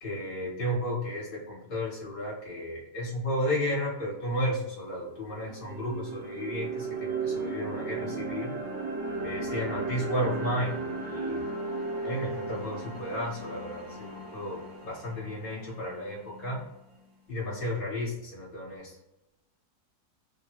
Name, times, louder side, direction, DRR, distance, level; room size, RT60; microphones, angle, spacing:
voice 1, 0.0-8.5 9.2-10.7 11.1-11.4 12.0-14.6 14.8-16.6 17.3-18.9, equal, 40° left, -5 dB, 1.1 m, -33 dB
sound 1, 4.3-4.4 4.9-16.9, right 3 dB, 60° right, 0.8 m, -36 dB
3.4 x 2.0 x 2.9 m, 0.91 s
omnidirectional pair, 1.8 m